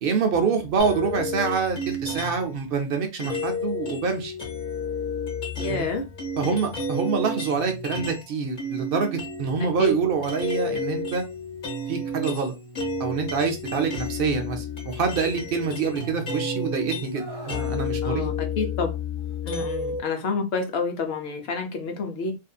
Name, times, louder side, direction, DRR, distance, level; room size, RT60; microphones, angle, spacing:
voice 1, 0.0-4.3 5.6-5.9 6.4-11.2 11.9-12.5 13.0-18.3 19.5-19.7, right 5 dB, 65° right, 0.7 m, -26 dB
sound 1, 0.8-2.5 3.2-8.3 8.6-20.0, left 2 dB, 50° left, 1.1 m, -31 dB
voice 2, 5.6-6.1 6.4-6.6 9.8-9.9 18.0-19.0 19.4-22.4, left 3 dB, 75° left, 0.9 m, -28 dB
Screaming, 17.1-17.7 19.2-19.4, right 2 dB, 30° right, 1.3 m, -41 dB
2.7 x 2.5 x 2.2 m
omnidirectional pair, 1.1 m